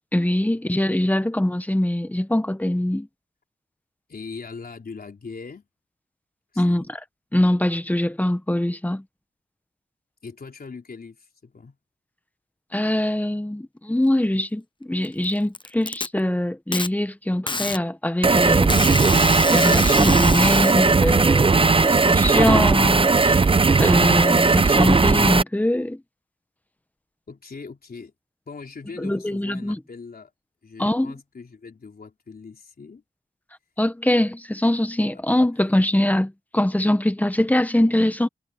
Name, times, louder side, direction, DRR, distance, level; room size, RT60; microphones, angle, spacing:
voice 1, 0.1-3.1 6.6-6.8 7.3-9.0 12.7-18.8 19.5-23.5 23.8-26.0 29.0-29.8 30.8-31.1 33.8-38.3, left 1 dB, 10° left, 1.2 m, -23 dB
voice 2, 4.1-5.7 6.5-6.9 10.2-11.8 27.3-28.1 28.5-30.3 30.6-33.0 35.4-35.5, left 4 dB, 65° left, 3.8 m, -40 dB
Packing tape duct tape, 15.0-16.1 16.7-16.9 17.5-17.8 18.7-20.7, left 3 dB, 30° left, 0.7 m, -27 dB
sound 1, 18.2-25.4, right 4 dB, 35° right, 0.6 m, -17 dB
wide cardioid pair, 100°, 17 cm